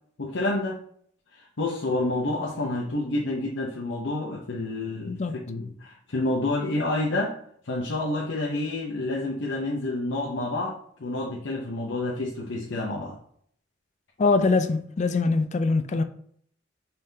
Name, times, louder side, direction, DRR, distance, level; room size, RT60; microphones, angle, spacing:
voice 1, 0.2-0.8 1.3-5.2 5.5-7.4 7.6-13.2, left 2 dB, 70° left, 0.8 m, -29 dB
voice 2, 14.2-16.0, left 3 dB, 40° left, 0.4 m, -23 dB
5.5 x 3.4 x 2.7 m
head